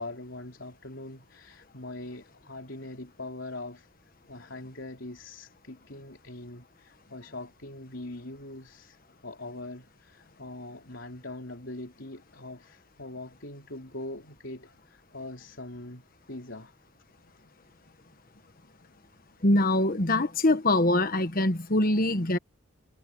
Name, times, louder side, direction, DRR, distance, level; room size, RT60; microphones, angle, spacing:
voice 1, 0.0-3.9 4.3-9.0 9.2-16.0 16.3-16.7, left 2 dB, 60° left, 3.9 m, -42 dB
voice 2, 19.4-22.4, left 1 dB, 45° left, 1.4 m, -23 dB
head